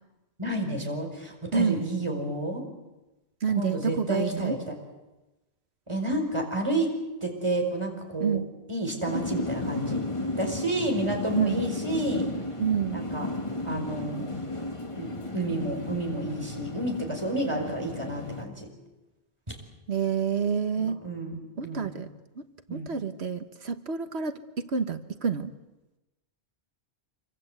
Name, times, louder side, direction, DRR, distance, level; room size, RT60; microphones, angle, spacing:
voice 1, 0.4-2.6 3.5-4.8 5.9-6.9 7.2-8.4 8.7-10.0 10.4-12.3 12.9-13.3 13.6-14.3 15.0-18.7 19.5-19.6 20.8-22.0 22.7-23.0, right 1 dB, 25° right, 2 dB, 5.0 m, -30 dB
voice 2, 3.4-4.6 8.2-8.5 11.3-11.6 12.6-13.0 19.9-21.0 21.6-22.1 22.4-22.5 22.7-25.5, right 6 dB, 75° right, 9 dB, 1.5 m, -28 dB
sound 1, 9.1-18.4, left 2 dB, 30° left, 1.9 m, -34 dB
26.5 x 25.0 x 8.0 m, 1.0 s
omnidirectional pair, 1.1 m